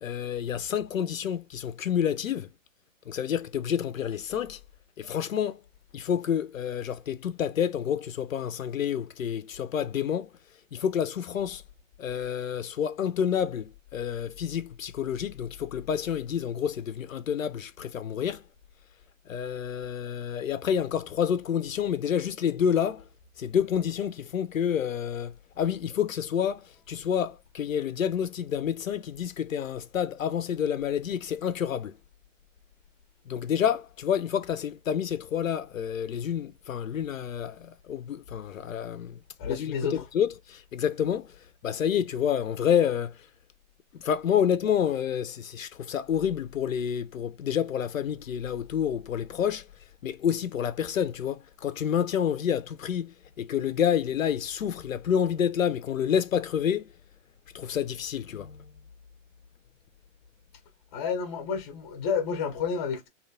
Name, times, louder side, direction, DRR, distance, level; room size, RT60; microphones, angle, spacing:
voice 1, 0.0-2.5 3.1-4.6 5.0-5.6 5.9-10.3 10.7-11.6 12.0-18.4 19.3-23.0 23.4-31.9 33.3-39.2 39.4-41.3 41.6-43.1 43.9-49.6 50.0-56.9 57.5-58.6, left 8 dB, 85° left, 0.5 m, -29 dB
voice 2, 39.4-40.0 60.9-63.1, left 6 dB, 20° left, 0.6 m, -30 dB
2.6 x 2.1 x 2.5 m
figure-of-eight pair, 125°, 39 cm